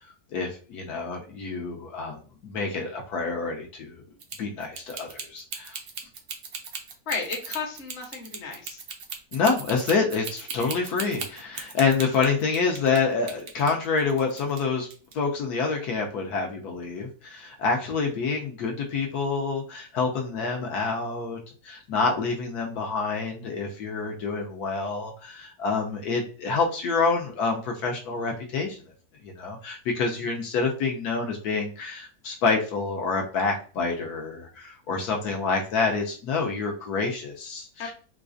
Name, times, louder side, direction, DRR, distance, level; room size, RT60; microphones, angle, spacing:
voice 1, 0.3-4.0 4.4-5.8 9.3-14.9 15.1-21.4 21.6-28.8 29.2-37.9, left 4 dB, 75° left, 1 dB, 1.1 m, -27 dB
sound 1, 4.2-13.0 13.3-14.6 14.9-15.1, right 5 dB, 85° right, 0.5 m, -37 dB
voice 2, 7.1-8.8 10.6-10.7 37.8-37.9, left 5 dB, 50° left, 0 dB, 1.0 m, -33 dB
3.9 x 2.4 x 2.5 m, 0.40 s
omnidirectional pair, 1.7 m